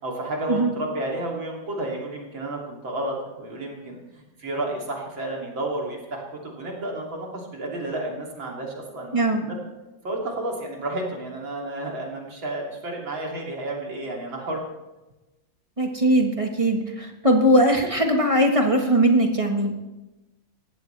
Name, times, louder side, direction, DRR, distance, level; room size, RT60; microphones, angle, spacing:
voice 1, 0.0-9.5 10.0-14.6, right 1 dB, 80° right, -1 dB, 3.7 m, -31 dB
voice 2, 9.1-9.5 15.8-19.7, right 1 dB, 20° right, 2 dB, 1.4 m, -20 dB
19.5 x 15.5 x 3.4 m, 1.0 s
omnidirectional pair, 2.1 m